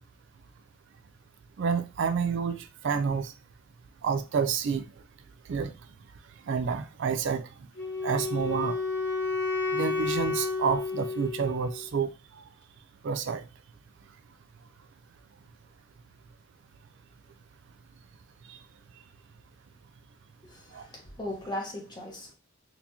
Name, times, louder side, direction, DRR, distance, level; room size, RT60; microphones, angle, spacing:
voice 1, 1.6-3.3 4.0-4.8 5.5-5.7 6.5-7.5 8.0-8.7 9.7-12.1 13.0-13.4 18.5-18.6 20.7-20.8, right 6 dB, 60° right, 0.3 m, -29 dB
Wind instrument woodwind instrument, 7.8-11.9, left 3 dB, 55° left, 0.9 m, -31 dB
voice 2, 20.4-22.3, left 1 dB, 20° left, 1.1 m, -38 dB
4.2 x 2.8 x 2.8 m
head